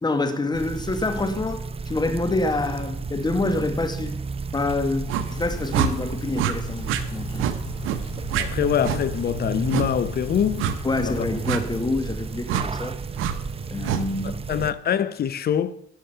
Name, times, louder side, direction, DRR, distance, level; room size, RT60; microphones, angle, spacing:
voice 1, 0.0-4.2 4.5-7.4 10.8-13.0 13.7-14.4, left 2 dB, 20° left, 1.3 m, -26 dB
sound 1, 0.5-14.7, right 4 dB, 30° right, 0.6 m, -33 dB
sound 2, 5.1-5.3 5.7-5.9 6.3-6.5 6.9-7.0 7.4-7.6 7.8-8.0 8.3-8.5 8.8-9.0 9.7-9.9 10.6-10.8 11.4-11.6 12.5-12.7 13.2-13.3 13.8-14.0, right 9 dB, 90° right, 0.8 m, -25 dB
Rain, 5.2-11.8, left 2 dB, 85° left, 3.8 m, -39 dB
voice 2, 8.3-10.6 11.0-11.3 14.2-15.8, left 9 dB, 50° left, 0.7 m, -24 dB
10.5 x 6.4 x 5.6 m
cardioid pair, 90°, 20 cm